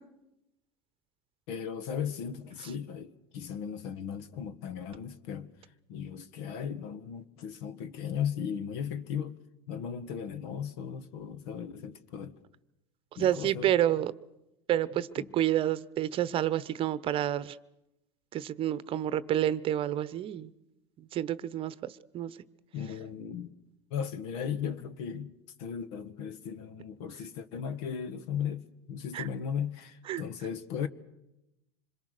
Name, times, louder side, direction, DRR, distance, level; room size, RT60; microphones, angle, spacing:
voice 1, 1.5-5.5 5.9-9.4 9.7-12.3 13.2-13.7 14.9-15.3 22.7-23.5 23.9-25.3 25.6-30.9, left 8 dB, 70° left, 1.6 m, -36 dB
voice 2, 13.2-14.1 14.7-17.6 18.3-20.5 21.1-21.7 22.1-22.3 29.1-29.3 30.1-30.2, right 12 dB, 40° right, 0.9 m, -29 dB
26.0 x 22.0 x 6.6 m
supercardioid pair, 115°, 15 cm